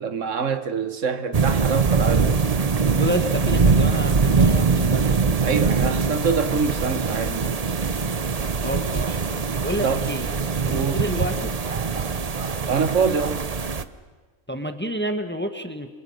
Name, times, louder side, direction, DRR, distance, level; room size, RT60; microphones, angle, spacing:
voice 1, 0.0-2.4 5.4-7.4 9.8-10.1 10.7-11.0 12.6-13.4, right 5 dB, 65° right, 1.7 m, -25 dB
sound 1, 1.3-13.8, right 5 dB, 35° right, 0.8 m, -22 dB
voice 2, 2.9-5.2 8.6-9.3 9.6-10.3 10.6-11.6 14.5-15.9, equal, 10° left, 1.5 m, -29 dB
28.5 x 25.5 x 6.5 m
omnidirectional pair, 1.4 m